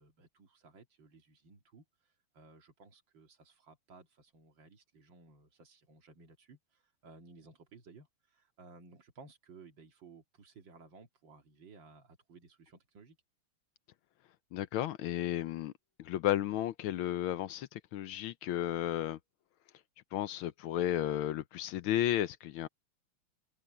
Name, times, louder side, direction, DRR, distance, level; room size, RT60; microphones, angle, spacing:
voice 1, 0.0-1.8 2.3-6.6 7.0-8.1 8.3-13.2, right 4 dB, 60° right, 2.6 m, -57 dB
voice 2, 14.5-15.7 16.0-19.2 20.1-22.7, left 12 dB, 75° left, 1.4 m, -33 dB
omnidirectional pair, 2.4 m